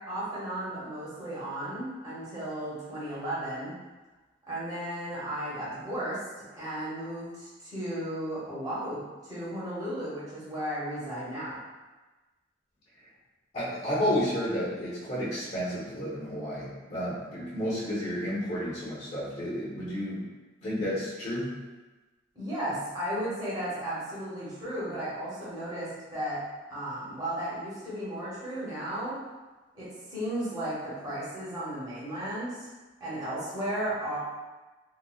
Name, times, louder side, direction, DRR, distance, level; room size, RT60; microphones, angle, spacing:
voice 1, 0.1-3.7 4.5-11.6 22.3-26.4 26.7-29.2 29.7-32.7 33.0-34.2, right 1 dB, 20° right, -10 dB, 1.1 m, -34 dB
voice 2, 13.5-20.2 20.6-21.5, equal, 45° left, -9 dB, 0.9 m, -31 dB
3.9 x 2.3 x 2.3 m, 1.2 s
head